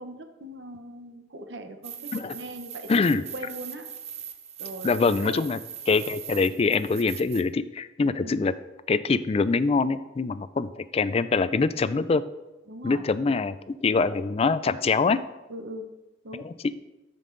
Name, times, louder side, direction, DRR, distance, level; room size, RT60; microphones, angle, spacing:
voice 1, 0.0-3.0 3.3-3.9 4.6-5.5 8.2-8.4 12.7-13.0 15.5-15.9 16.2-16.5, right 1 dB, 70° right, 6 dB, 0.9 m, -40 dB
sound 1, 1.8-7.4, right 9 dB, 35° right, 0.6 m, -40 dB
voice 2, 2.9-3.2 4.8-5.6 5.9-8.5 8.9-12.2 12.8-15.2 16.4-16.5, left 4 dB, 30° left, 15 dB, 0.3 m, -24 dB
14.0 x 5.3 x 3.9 m, 1.1 s
head